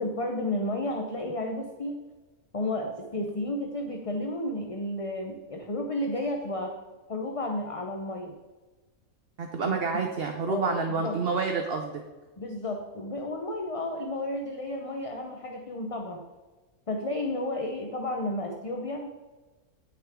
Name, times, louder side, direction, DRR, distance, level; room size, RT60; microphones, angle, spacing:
voice 1, 0.0-2.0 2.5-6.8 7.1-8.3 9.6-9.8 10.5-11.2 12.4-16.2 16.9-19.1, left 1 dB, 30° left, 2 dB, 0.8 m, -32 dB
voice 2, 9.4-12.0, right 4 dB, 50° right, 4 dB, 1.0 m, -28 dB
17.0 x 6.3 x 3.7 m, 1.2 s
omnidirectional pair, 1.5 m